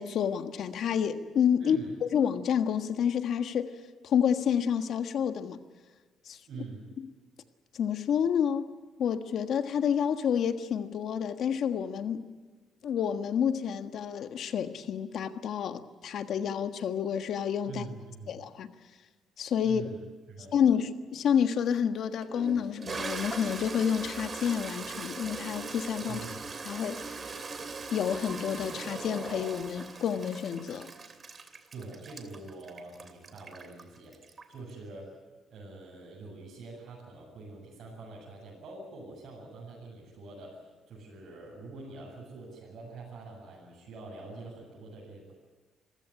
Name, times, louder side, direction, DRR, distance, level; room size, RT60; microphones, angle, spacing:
voice 1, 0.0-3.8 4.0-5.6 6.2-6.4 7.7-8.7 9.0-12.3 12.8-17.8 18.3-18.7 19.4-19.8 20.5-26.2 26.6-27.3 27.9-30.9, left 8 dB, 70° left, 1.5 m, -29 dB
voice 2, 1.6-1.9 6.5-6.8 17.7-18.4 19.6-20.8 26.1-26.4 31.7-35.1 35.5-45.3, right 3 dB, 65° right, 7.8 m, -45 dB
Toilet flush, 21.5-21.6 22.2-34.7, right 4 dB, 35° right, 2.9 m, -40 dB
26.0 x 15.5 x 10.0 m
cardioid pair, 90°, 0 cm